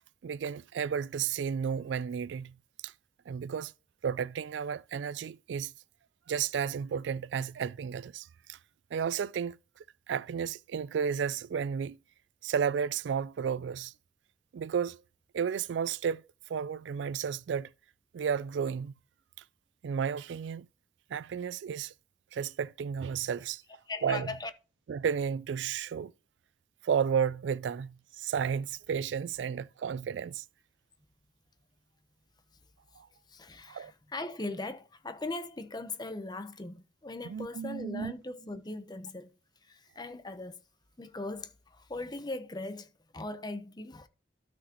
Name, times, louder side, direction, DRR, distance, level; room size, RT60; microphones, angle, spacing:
voice 1, 0.2-2.6 2.8-2.9 3.3-3.7 4.0-5.7 6.3-8.6 8.9-9.6 10.1-12.0 12.4-13.9 14.5-15.0 15.3-16.2 16.5-17.7 18.1-18.9 19.8-20.7 21.1-21.9 22.3-23.6 24.0-24.3 24.9-26.1 26.8-30.4 33.0-33.1 33.7-33.9 37.2-38.1, right 7 dB, 80° right, 0.3 m, -32 dB
voice 2, 23.9-24.5 33.3-39.3 39.7-40.6 41.0-44.1, left 2 dB, 25° left, 0.9 m, -39 dB
12.5 x 6.1 x 3.0 m
head